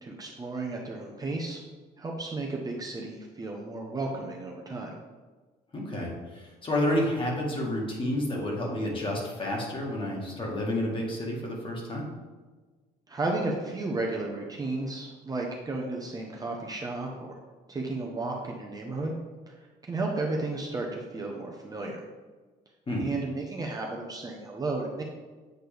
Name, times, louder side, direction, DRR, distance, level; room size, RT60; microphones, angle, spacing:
voice 1, 0.0-1.6 2.0-5.0 13.1-17.4 17.7-19.1 19.5-19.6 19.8-22.0 23.0-25.0, right 2 dB, 20° right, -1 dB, 0.9 m, -33 dB
voice 2, 5.7-12.1 22.9-23.0, left 1 dB, 30° left, -2 dB, 1.8 m, -30 dB
7.9 x 4.3 x 3.4 m, 1.3 s
cardioid pair, 110°, 17 cm